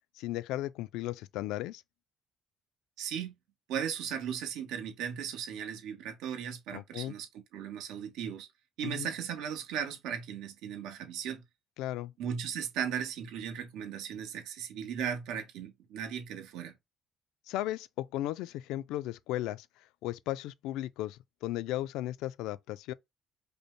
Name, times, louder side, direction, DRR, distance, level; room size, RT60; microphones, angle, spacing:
voice 1, 0.2-1.8 6.7-7.1 8.8-9.1 11.8-12.1 17.5-19.7 20.0-22.9, left 14 dB, 90° left, 0.3 m, -35 dB
voice 2, 3.0-3.3 3.7-8.5 8.8-11.4 12.2-16.7, right 8 dB, 85° right, 1.0 m, -37 dB
5.2 x 2.1 x 3.1 m
cardioid pair, 120°, 0 cm